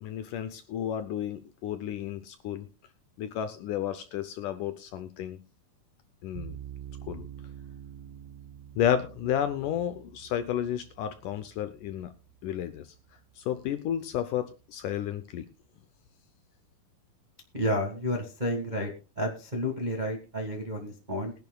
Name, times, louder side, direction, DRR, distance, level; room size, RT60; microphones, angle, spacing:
voice 1, 0.0-2.7 3.2-5.4 6.2-6.6 7.1-7.3 8.8-12.1 12.4-12.9 13.4-15.5, left 10 dB, 75° left, 10 dB, 1.9 m, -32 dB
sound 1, 6.4-13.5, right 10 dB, 85° right, 1.5 m, -47 dB
voice 2, 17.5-18.9 19.1-21.3, equal, 35° right, 1 dB, 0.6 m, -31 dB
22.0 x 10.5 x 2.3 m, 0.32 s
omnidirectional pair, 4.3 m